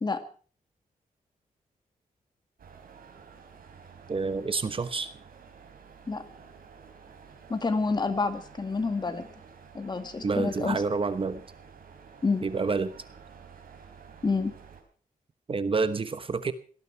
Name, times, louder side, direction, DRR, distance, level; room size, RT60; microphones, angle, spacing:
sound 1, 2.6-14.8, right 6 dB, 80° right, 4.4 m, -51 dB
voice 1, 4.1-5.1 10.2-11.4 12.4-12.9 15.5-16.5, right 4 dB, 40° right, 12 dB, 1.1 m, -28 dB
voice 2, 7.5-9.3 9.7-10.8 12.2-12.5 14.2-14.5, left 4 dB, 30° left, 8 dB, 2.1 m, -28 dB
18.0 x 13.5 x 6.0 m, 0.42 s
wide cardioid pair, 140°, 15 cm